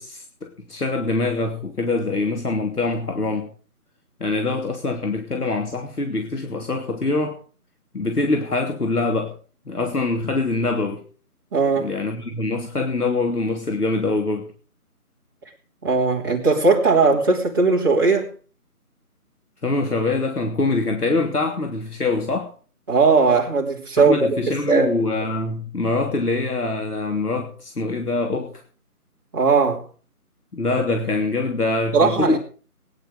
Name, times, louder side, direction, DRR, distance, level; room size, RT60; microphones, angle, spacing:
voice 1, 0.0-3.5 4.2-7.4 7.9-9.4 9.7-11.0 11.8-14.5 19.6-22.5 24.0-28.6 30.5-32.4, left 3 dB, 75° left, 3.2 m, -24 dB
voice 2, 11.5-11.9 15.8-18.3 22.9-24.9 29.3-29.8 31.9-32.4, right 4 dB, 15° right, 2.9 m, -18 dB
20.5 x 10.5 x 5.1 m
figure-of-eight pair, 170°, 46 cm